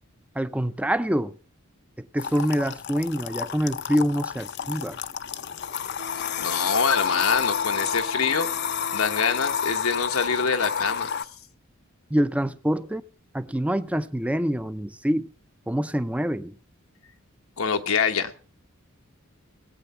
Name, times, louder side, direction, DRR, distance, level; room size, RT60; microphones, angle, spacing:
voice 1, 0.4-1.4 2.1-5.0 12.1-13.0 13.3-15.3 15.7-16.6, equal, 5° right, 0.5 m, -25 dB
sound 1, 2.2-11.3, left 7 dB, 55° left, 0.6 m, -30 dB
Wind instrument woodwind instrument, 6.0-10.1, left 2 dB, 85° right, 2.1 m, -42 dB
voice 2, 6.1-8.5 8.9-11.1 17.6-18.5, left 5 dB, 90° left, 1.2 m, -25 dB
18.0 x 8.6 x 5.7 m
head